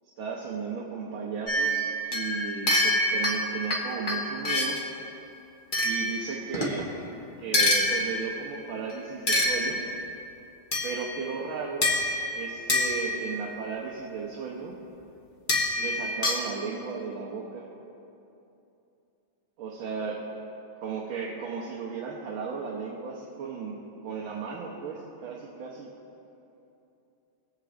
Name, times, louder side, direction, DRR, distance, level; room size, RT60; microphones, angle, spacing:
voice 1, 0.1-4.8 5.8-6.9 7.4-9.8 10.8-11.9 12.3-14.7 15.8-17.7 19.6-20.2 20.8-25.9, right 5 dB, 75° right, -3 dB, 1.7 m, -35 dB
sound 1, 1.5-4.9 5.7-6.8 7.5-8.5 9.3-10.1 10.7-11.3 11.8-13.5 15.5-16.5, left 1 dB, 35° left, 0.8 m, -27 dB
19.5 x 8.2 x 2.5 m, 2.8 s
omnidirectional pair, 2.4 m